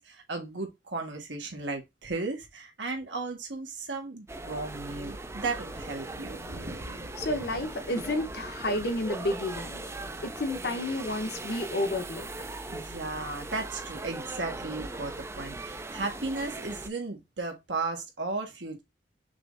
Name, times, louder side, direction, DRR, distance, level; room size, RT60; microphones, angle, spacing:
voice 1, 0.0-6.4 12.7-18.8, right 3 dB, 80° right, 1.6 m, -35 dB
sound 1, 4.3-16.9, right 2 dB, 15° right, 0.5 m, -39 dB
sound 2, 4.9-10.4, right 1 dB, 65° right, 1.1 m, -48 dB
voice 2, 7.2-9.8 10.2-12.3, left 1 dB, 60° left, 1.1 m, -31 dB
6.0 x 3.2 x 2.6 m
head